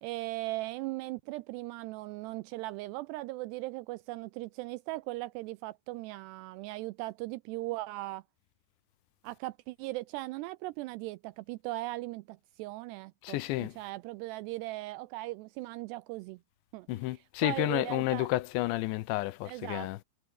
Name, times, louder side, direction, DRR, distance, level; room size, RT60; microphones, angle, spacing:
voice 1, 0.0-8.2 9.2-16.4 16.7-16.9 17.1-18.3 19.5-20.0, right 19 dB, 85° right, 2.4 m, -38 dB
voice 2, 13.2-13.8 16.9-20.0, left 18 dB, 85° left, 2.9 m, -31 dB
omnidirectional pair, 5.4 m